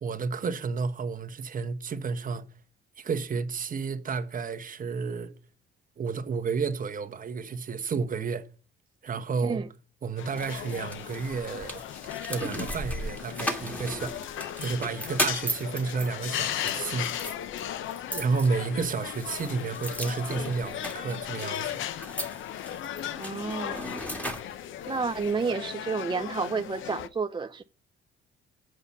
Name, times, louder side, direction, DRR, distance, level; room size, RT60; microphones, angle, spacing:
voice 1, 0.0-2.5 3.0-5.3 6.0-8.5 9.0-9.6 10.0-11.8 12.3-14.2 14.6-17.2 18.1-21.7, right 5 dB, 45° right, 1.2 m, -31 dB
sound 1, 10.2-27.1, left 11 dB, 80° left, 0.7 m, -37 dB
sound 2, 10.4-25.3, equal, 5° left, 2.2 m, -37 dB
voice 2, 23.2-23.9 24.9-27.6, right 4 dB, 25° right, 0.5 m, -30 dB
7.9 x 5.6 x 7.1 m
cardioid pair, 90°, 20 cm